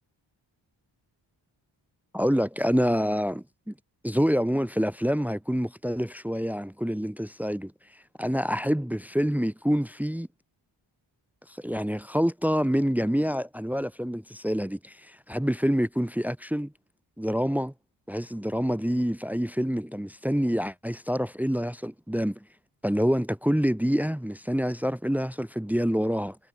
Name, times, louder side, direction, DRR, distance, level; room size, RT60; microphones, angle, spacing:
voice 1, 2.1-3.7 4.0-10.3 11.5-16.7 17.2-17.7 18.1-22.4 22.8-26.4, equal, 5° right, 1.4 m, -27 dB
cardioid pair, 60°, 45 cm